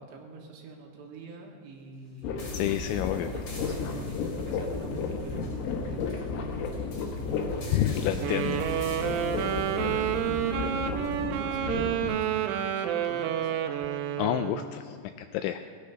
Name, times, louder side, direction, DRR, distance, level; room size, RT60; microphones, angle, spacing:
voice 1, 0.0-2.4 3.3-6.3 6.7-13.6, right 3 dB, 65° right, 1 dB, 3.2 m, -45 dB
sound 1, 2.2-12.1, left 4 dB, 70° left, 3.2 m, -33 dB
sound 2, 2.4-11.2, left 3 dB, 40° left, 2.7 m, -50 dB
voice 2, 2.5-3.3 7.7-8.6 14.2-15.6, left 12 dB, 85° left, 8 dB, 2.6 m, -29 dB
Wind instrument woodwind instrument, 8.2-14.7, right 10 dB, 85° right, 3.2 m, -29 dB
20.0 x 10.0 x 5.7 m, 2.1 s
omnidirectional pair, 5.7 m